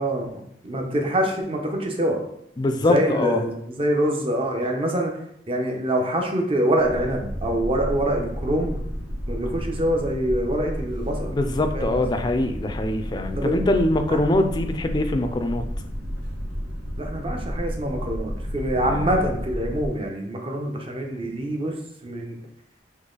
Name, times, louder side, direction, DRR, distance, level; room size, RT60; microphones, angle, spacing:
voice 1, 0.0-2.2 2.8-5.1 5.5-8.8 9.3-12.2 13.4-13.6 14.1-14.2 17.0-22.4, right 1 dB, 30° right, 2 dB, 0.7 m, -25 dB
voice 2, 2.6-3.4 11.3-15.7 18.8-19.1, left 1 dB, 25° left, 6 dB, 0.4 m, -23 dB
sound 1, 6.8-19.9, equal, 85° right, 1.6 m, -32 dB
3.9 x 3.1 x 3.8 m, 0.74 s
head